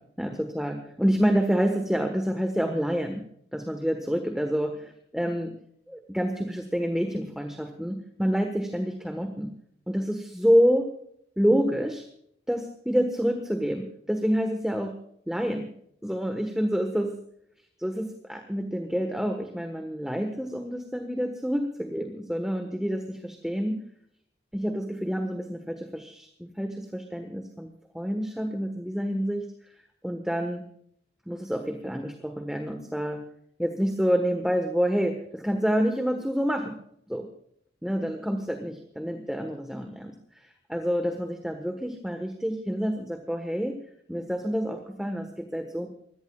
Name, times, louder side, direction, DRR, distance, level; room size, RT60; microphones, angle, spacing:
voice 1, 0.2-3.3 3.5-5.6 5.9-9.5 9.9-10.9 11.4-12.0 12.5-15.0 15.3-15.7 16.0-17.2 17.8-23.8 24.5-29.5 30.0-30.6 31.3-33.2 33.6-36.8 37.1-37.3 37.8-43.8 44.1-45.9, equal, 5° right, 5 dB, 1.3 m, -28 dB
24.5 x 17.5 x 2.4 m, 0.68 s
head